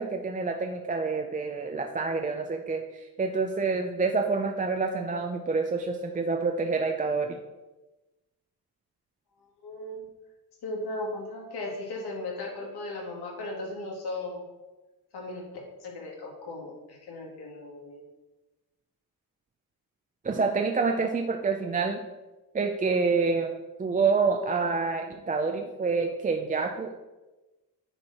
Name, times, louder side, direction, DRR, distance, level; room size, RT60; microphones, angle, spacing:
voice 1, 0.0-7.4 20.2-22.0 22.5-23.5 23.8-27.0, right 4 dB, 20° right, 4 dB, 0.4 m, -27 dB
voice 2, 9.6-10.1 10.6-14.4 15.1-18.0, left 2 dB, 85° left, -2 dB, 2.3 m, -37 dB
9.6 x 4.5 x 4.2 m, 1.1 s
wide cardioid pair, 155°, 38 cm